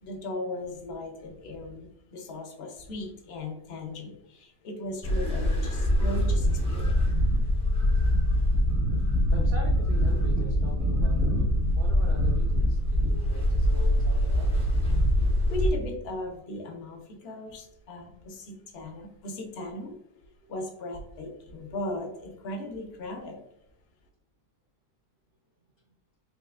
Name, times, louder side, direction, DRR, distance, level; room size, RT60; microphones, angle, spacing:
voice 1, 0.0-7.0 15.5-19.9 20.5-23.4, left 1 dB, 60° left, 2 dB, 0.7 m, -37 dB
sound 1, 5.0-15.7, equal, 10° left, 0.3 m, -24 dB
voice 2, 9.3-11.3 11.7-14.5 20.4-20.6, right 1 dB, 75° right, -3 dB, 0.5 m, -43 dB
3.9 x 3.0 x 2.4 m, 0.78 s
omnidirectional pair, 1.8 m